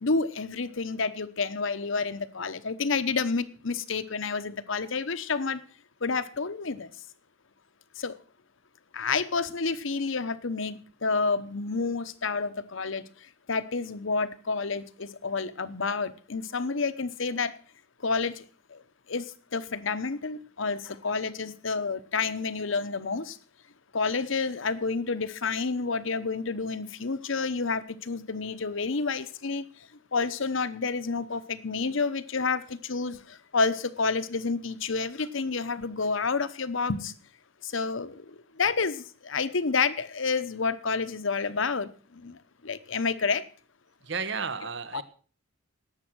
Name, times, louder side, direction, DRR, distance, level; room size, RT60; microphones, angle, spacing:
voice 1, 0.0-5.6 6.0-6.9 8.0-8.2 8.9-17.5 18.0-18.8 19.1-23.4 23.9-37.1 37.6-43.5 44.9-45.0, left 4 dB, 65° left, 0.9 m, -29 dB
voice 2, 44.0-45.0, right 5 dB, 60° right, 1.1 m, -32 dB
18.5 x 7.5 x 6.2 m
head